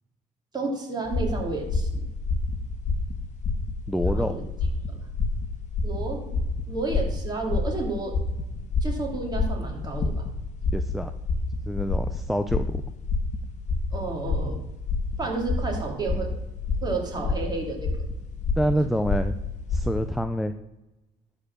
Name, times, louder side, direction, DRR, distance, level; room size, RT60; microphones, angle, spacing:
voice 1, 0.5-2.1 4.0-4.4 4.9-5.0 5.8-6.3 6.7-8.2 8.8-10.3 13.9-14.6 15.2-16.3 16.8-17.9 18.4-18.8, right 3 dB, 25° right, 0 dB, 2.7 m, -31 dB
sound 1, 1.0-20.2, left 3 dB, 45° left, 1.4 m, -29 dB
voice 2, 3.9-4.4 10.7-11.1 11.7-12.8 18.6-19.3 19.7-20.5, equal, ahead, 9 dB, 0.4 m, -26 dB
12.0 x 4.4 x 6.7 m, 0.98 s
cardioid pair, 110°, 17 cm